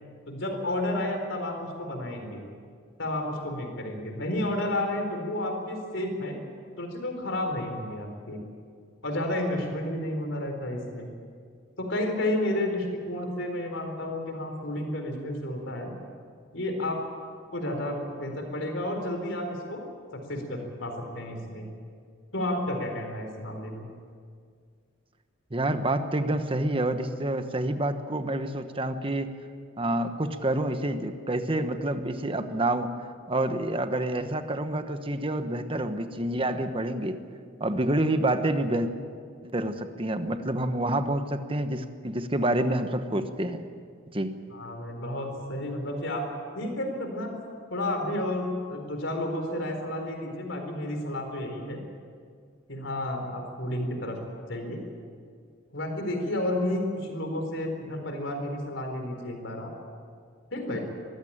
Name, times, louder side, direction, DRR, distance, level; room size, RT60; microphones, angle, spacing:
voice 1, 0.3-2.4 3.0-6.4 6.8-8.4 9.0-11.1 11.8-15.9 16.5-17.1 17.5-19.8 20.3-21.7 22.3-23.9 44.5-46.3 46.5-47.3 47.7-51.8 52.7-54.2 54.5-54.8 55.7-59.7 60.5-60.8, left 1 dB, 70° left, 4 dB, 4.2 m, -31 dB
voice 2, 25.5-29.3 29.8-32.9 33.3-37.2 37.6-38.9 39.4-43.6 44.1-44.3, right 1 dB, 30° right, 8 dB, 1.2 m, -28 dB
22.5 x 15.0 x 8.9 m, 2.1 s
head